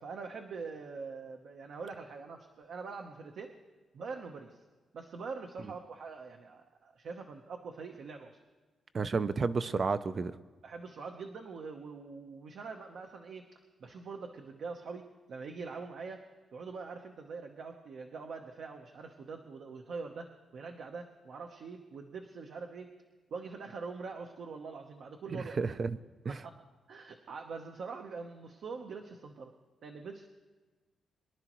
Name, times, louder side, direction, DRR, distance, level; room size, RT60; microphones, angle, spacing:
voice 1, 0.0-3.5 3.9-4.6 4.9-8.4 10.6-13.5 13.8-15.0 15.3-16.2 16.5-22.9 23.3-25.7 26.2-26.6 26.9-29.5 29.8-30.3, right 4 dB, 60° right, 3 dB, 0.9 m, -44 dB
voice 2, 8.9-10.3 25.3-26.0 26.2-26.4, right 4 dB, 35° right, 13 dB, 0.4 m, -31 dB
23.5 x 11.0 x 3.0 m, 1.3 s
wide cardioid pair, 180°, 0 cm